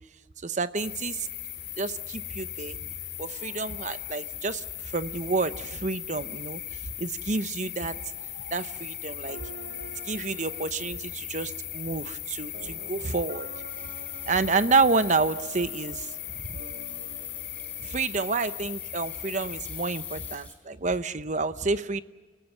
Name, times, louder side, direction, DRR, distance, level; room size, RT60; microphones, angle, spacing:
voice 1, 0.4-1.3 1.8-2.8 3.2-4.6 4.9-6.6 7.0-8.0 8.5-9.4 10.0-13.5 14.3-16.1 16.4-16.6 17.8-22.0, right 4 dB, 40° right, 12 dB, 0.8 m, -29 dB
sound 1, 0.8-20.4, left 12 dB, 60° left, 3.3 m, -38 dB
sound 2, 9.2-20.3, right 3 dB, 55° right, 3.0 m, -48 dB
Hands / Sink (filling or washing), 13.7-20.6, left 2 dB, 10° left, 4.1 m, -55 dB
29.0 x 17.5 x 8.0 m, 1.4 s
head